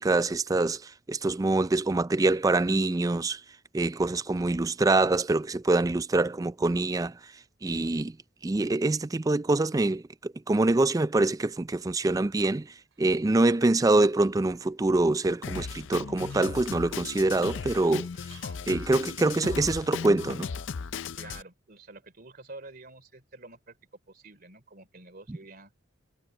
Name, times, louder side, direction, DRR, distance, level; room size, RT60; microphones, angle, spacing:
voice 1, 0.0-3.4 3.7-7.3 7.6-8.2 8.4-18.1 18.7-20.5, right 2 dB, 15° right, 0.3 m, -25 dB
Cough, 12.9-14.2 14.5-14.8 15.1-16.9 18.3-18.7 18.9-19.0, right 6 dB, 60° right, 7.1 m, -55 dB
Drum kit, 15.4-21.4, left 6 dB, 60° left, 0.5 m, -37 dB
voice 2, 21.1-23.8 24.1-25.7, right 2 dB, 45° right, 3.1 m, -48 dB
head